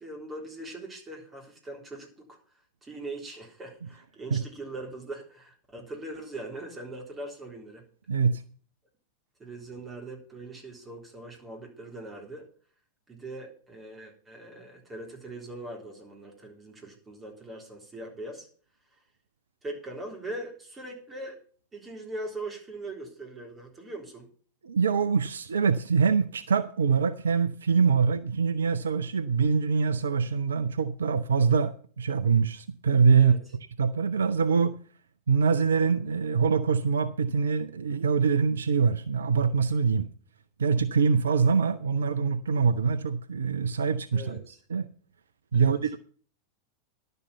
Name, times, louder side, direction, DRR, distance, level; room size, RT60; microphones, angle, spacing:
voice 1, 0.0-2.4 2.8-7.9 9.4-12.5 13.1-18.5 18.9-19.0 19.6-21.4 21.7-24.3 33.1-33.4 44.1-44.6 45.5-45.8, right 2 dB, 15° right, 3.7 m, -41 dB
voice 2, 8.1-8.4 24.6-33.3 33.8-34.8 35.3-40.1 40.6-44.4 44.7-44.9 45.5-46.0, right 5 dB, 70° right, 0.5 m, -24 dB
11.0 x 6.8 x 6.9 m
figure-of-eight pair, 90°, 0 cm